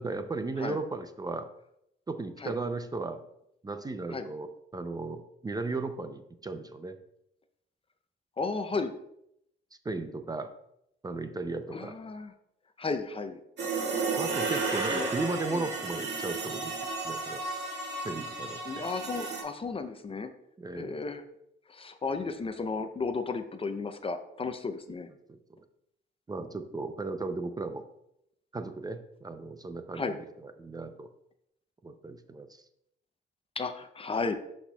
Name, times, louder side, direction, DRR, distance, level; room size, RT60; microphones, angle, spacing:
voice 1, 0.0-1.5 2.1-3.2 3.6-7.0 9.8-10.5 11.0-11.9 14.2-16.7 17.0-17.4 18.0-18.9 20.6-21.0 25.3-25.4 26.3-27.8 28.5-31.1 31.8-32.6, right 3 dB, 20° right, 8 dB, 0.5 m, -36 dB
voice 2, 8.4-8.9 11.7-12.3 12.8-13.4 14.9-15.1 15.5-15.6 18.7-20.3 20.8-21.2 21.7-25.1 29.9-30.1 33.6-34.4, left 4 dB, 30° left, 8 dB, 0.5 m, -34 dB
sound 1, 13.6-19.4, right 3 dB, 60° right, 1.8 m, -33 dB
11.0 x 4.2 x 2.3 m, 0.78 s
cardioid pair, 90°, 20 cm